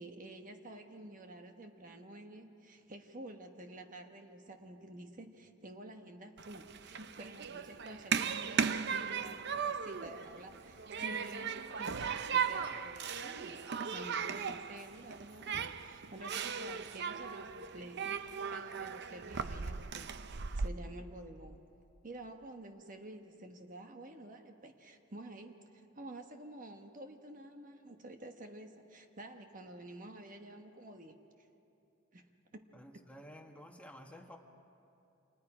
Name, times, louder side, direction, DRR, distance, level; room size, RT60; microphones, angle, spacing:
voice 1, 0.0-21.6 22.0-31.5 32.1-32.6, right 1 dB, 40° right, 5 dB, 1.2 m, -50 dB
Human group actions, 6.4-20.7, right 6 dB, 60° right, 0.7 m, -37 dB
voice 2, 32.7-34.4, equal, 5° left, 2 dB, 1.5 m, -53 dB
29.5 x 26.5 x 4.9 m, 2.7 s
head